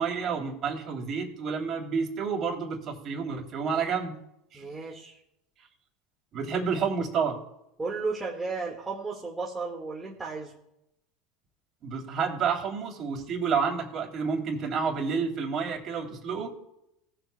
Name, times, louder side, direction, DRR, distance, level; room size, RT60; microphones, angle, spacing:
voice 1, 0.0-4.2 4.5-4.6 6.3-7.4 11.8-16.5, right 5 dB, 45° right, 1 dB, 3.0 m, -29 dB
voice 2, 4.5-5.2 7.8-10.6, right 4 dB, 15° right, -3 dB, 1.7 m, -34 dB
18.5 x 7.9 x 2.2 m, 0.83 s
hypercardioid pair, 90°, 0 cm